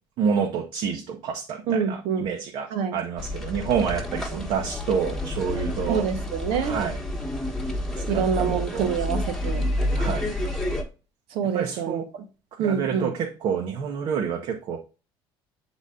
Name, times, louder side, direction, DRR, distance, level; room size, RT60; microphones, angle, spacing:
voice 1, 0.2-6.0 6.6-7.0 8.1-8.9 10.0-10.3 11.5-12.0 12.6-14.8, right 7 dB, 60° right, 1.0 m, -28 dB
voice 2, 1.7-2.3 2.7-3.0 4.3-4.5 5.9-6.8 8.1-9.7 11.3-12.0 12.6-13.1, right 7 dB, 75° right, 1.3 m, -26 dB
sound 1, 3.2-10.8, left 1 dB, 5° left, 1.2 m, -29 dB
7.1 x 4.0 x 3.7 m
cardioid pair, 135°, 10 cm